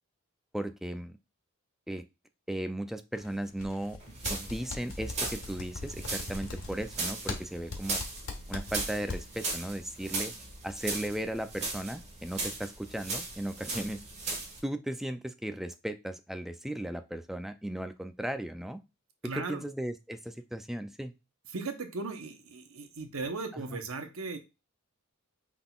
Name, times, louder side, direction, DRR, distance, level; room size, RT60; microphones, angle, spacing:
voice 1, 0.5-1.2 1.9-2.0 2.5-4.0 4.3-8.0 8.5-10.3 10.6-14.0 14.6-18.8 19.2-21.1 23.5-23.8, right 1 dB, ahead, 9 dB, 0.3 m, -36 dB
sound 1, 3.1-4.0 4.2-9.5, left 3 dB, 85° left, 1.2 m, -39 dB
sound 2, 4.0-14.6, right 3 dB, 30° right, 1.5 m, -38 dB
voice 2, 19.2-19.6 21.5-24.4, right 3 dB, 80° right, 6 dB, 0.9 m, -37 dB
5.8 x 3.7 x 2.3 m, 0.27 s
head